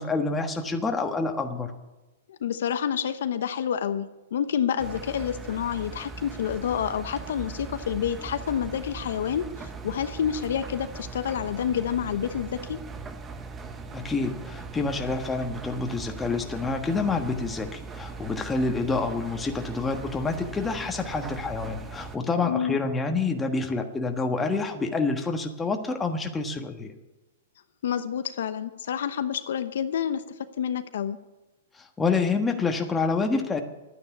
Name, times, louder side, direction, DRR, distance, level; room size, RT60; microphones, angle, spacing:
voice 1, 0.0-1.7 13.9-26.9 32.0-33.6, left 3 dB, 10° left, 4 dB, 1.4 m, -27 dB
voice 2, 2.3-12.8 22.4-22.8 27.8-31.2, left 8 dB, 70° left, 10 dB, 0.9 m, -28 dB
Engine, 4.8-22.2, right 4 dB, 20° right, 1.0 m, -40 dB
11.5 x 9.5 x 8.5 m, 1.1 s
hypercardioid pair, 135°, 0 cm